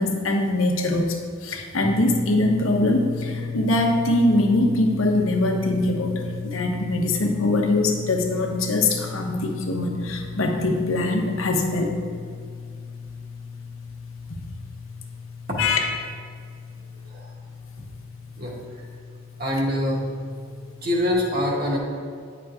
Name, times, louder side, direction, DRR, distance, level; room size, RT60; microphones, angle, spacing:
voice 1, 0.0-12.0 14.3-14.4 15.6-16.0, left 2 dB, 85° left, 3 dB, 1.0 m, -23 dB
sound 1, 1.8-21.1, left 5 dB, 25° right, 1.0 m, -35 dB
voice 2, 19.4-20.0 20.5-21.8, left 1 dB, 50° right, -3 dB, 1.6 m, -25 dB
9.6 x 5.9 x 3.6 m, 2.2 s
head